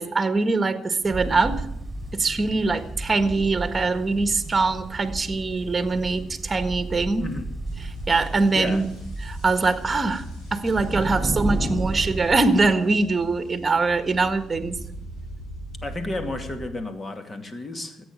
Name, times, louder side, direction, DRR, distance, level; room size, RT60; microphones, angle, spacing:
voice 1, 0.0-1.6 2.1-7.2 7.8-8.9 9.2-14.8, right 3 dB, 25° right, 9 dB, 1.6 m, -23 dB
sound 1, 1.0-12.7, right 1 dB, 5° right, 5.2 m, -33 dB
sound 2, 7.7-16.6, right 1 dB, 75° left, 7.3 m, -41 dB
voice 2, 15.8-18.0, left 2 dB, 30° left, 7 dB, 2.5 m, -32 dB
14.0 x 9.2 x 9.5 m, 0.80 s
cardioid pair, 85°, 0 cm